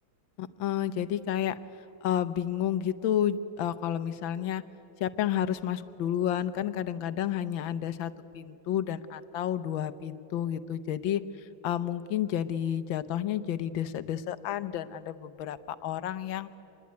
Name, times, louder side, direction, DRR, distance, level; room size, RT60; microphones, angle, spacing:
voice 1, 0.4-1.6 2.0-4.6 5.0-16.5, left 10 dB, 70° left, 14 dB, 1.5 m, -31 dB
25.5 x 20.5 x 9.5 m, 2.8 s
omnidirectional pair, 2.3 m